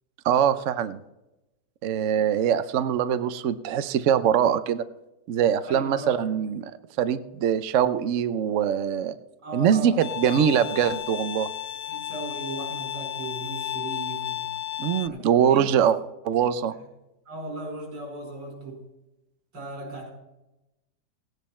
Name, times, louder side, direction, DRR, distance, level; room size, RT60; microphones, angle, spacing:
voice 1, 0.2-1.0 1.8-4.8 5.3-6.7 7.0-9.2 9.5-11.5 14.8-16.0 16.2-16.7, right 9 dB, 60° right, 12 dB, 0.8 m, -23 dB
voice 2, 5.6-6.1 9.4-10.0 11.9-14.5 15.1-15.2 15.5-15.7 16.6-16.7 17.3-18.8 19.5-20.1, right 2 dB, 85° right, -1 dB, 5.5 m, -37 dB
Bowed string instrument, 10.0-15.1, left 11 dB, 85° left, 1.3 m, -33 dB
17.5 x 9.5 x 4.3 m, 0.95 s
omnidirectional pair, 1.9 m